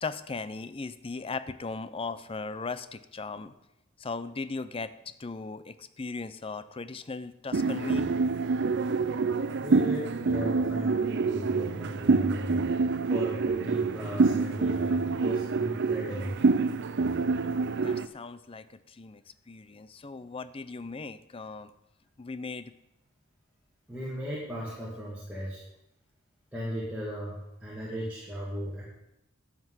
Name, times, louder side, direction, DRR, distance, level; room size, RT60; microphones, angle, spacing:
voice 1, 0.0-3.5 4.0-4.9 5.2-8.1 9.5-9.6 17.4-21.7 22.2-22.7, left 4 dB, 25° left, 13 dB, 0.5 m, -38 dB
sound 1, 7.5-18.1, right 4 dB, 55° right, 0.5 m, -27 dB
voice 2, 9.6-16.4 23.9-25.6 26.5-28.8, equal, 5° right, -7 dB, 2.4 m, -36 dB
11.5 x 6.0 x 8.0 m, 0.89 s
head